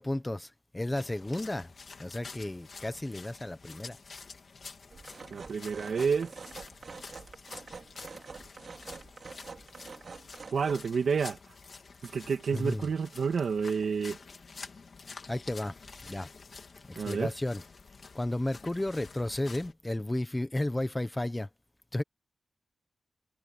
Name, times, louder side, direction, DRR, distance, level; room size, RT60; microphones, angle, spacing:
voice 1, 0.0-1.7 2.0-4.0 12.5-12.8 15.3-15.8 16.0-16.3 16.9-17.6 18.1-21.5 21.9-22.0, left 1 dB, 10° left, 1.0 m, -33 dB
sound 1, 0.9-19.7, left 4 dB, 45° left, 3.4 m, -49 dB
sound 2, 4.9-10.7, right 4 dB, 45° right, 3.9 m, -46 dB
voice 2, 5.3-6.5 10.5-11.5 12.0-14.2 17.0-17.3, right 5 dB, 65° right, 2.5 m, -30 dB
wide cardioid pair, 170°, 0 cm